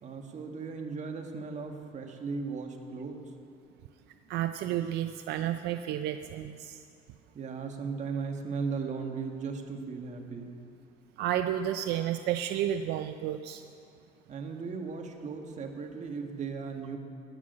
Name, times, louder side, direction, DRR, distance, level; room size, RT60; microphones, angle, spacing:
voice 1, 0.0-3.2 7.3-10.5 14.3-17.0, right 5 dB, 45° right, 3 dB, 1.6 m, -37 dB
voice 2, 4.3-6.8 11.2-13.6, right 11 dB, 80° right, 9 dB, 0.5 m, -31 dB
15.0 x 6.2 x 9.5 m, 2.6 s
cardioid pair, 110°, 17 cm